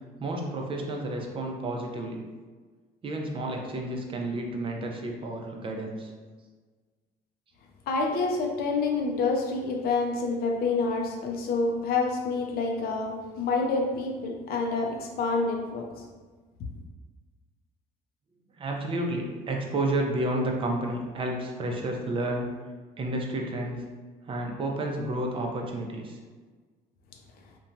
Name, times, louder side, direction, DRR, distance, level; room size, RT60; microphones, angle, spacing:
voice 1, 0.2-2.2 3.0-6.1 18.5-22.5 23.0-23.8 24.2-26.2, right 1 dB, 30° right, 1 dB, 0.5 m, -31 dB
voice 2, 7.9-16.0, left 3 dB, 65° left, 1 dB, 0.4 m, -28 dB
2.9 x 2.2 x 2.5 m, 1.4 s
cardioid pair, 110°, 17 cm